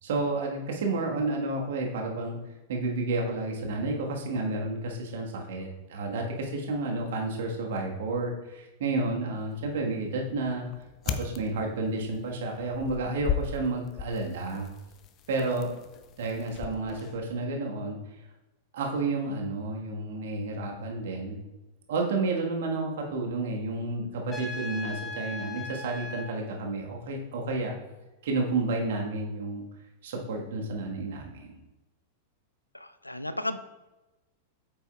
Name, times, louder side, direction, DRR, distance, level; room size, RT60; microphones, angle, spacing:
voice 1, 0.0-2.4 2.7-10.7 11.0-14.7 15.3-15.7 16.2-18.0 18.7-21.4 21.9-27.7 28.2-29.6 30.0-31.6, right 2 dB, 55° right, 0 dB, 1.4 m, -31 dB
sound 1, 9.4-17.4, left 7 dB, 30° left, 0.6 m, -38 dB
Trumpet, 24.3-26.3, left 2 dB, 15° left, 1.3 m, -38 dB
voice 2, 32.7-33.6, left 1 dB, 85° left, 12 dB, 0.5 m, -34 dB
8.6 x 8.3 x 2.3 m, 1.1 s
figure-of-eight pair, 95°, 0 cm